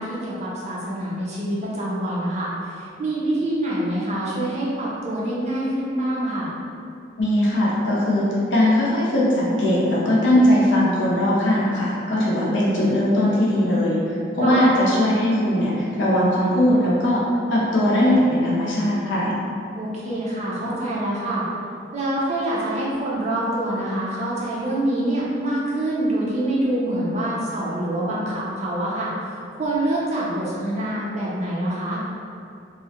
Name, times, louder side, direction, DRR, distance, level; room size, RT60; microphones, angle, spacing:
voice 1, 0.0-6.5 14.4-14.6 19.8-21.5 21.9-32.0, right 1 dB, 35° right, -6 dB, 0.5 m, -26 dB
voice 2, 7.2-8.2 8.5-17.2 17.5-19.3, left 1 dB, 80° left, -6 dB, 0.5 m, -19 dB
2.4 x 2.0 x 2.7 m, 2.4 s
head